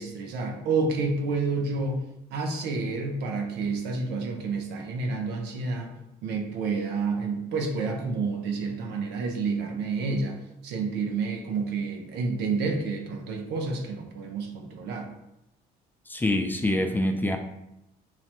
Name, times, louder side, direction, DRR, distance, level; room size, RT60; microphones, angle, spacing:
voice 1, 0.0-2.0 2.3-15.1, right 4 dB, 85° right, 3 dB, 0.7 m, -29 dB
voice 2, 16.1-17.4, left 1 dB, 10° left, 5 dB, 0.3 m, -25 dB
5.7 x 2.0 x 3.0 m, 0.85 s
cardioid pair, 110°, 17 cm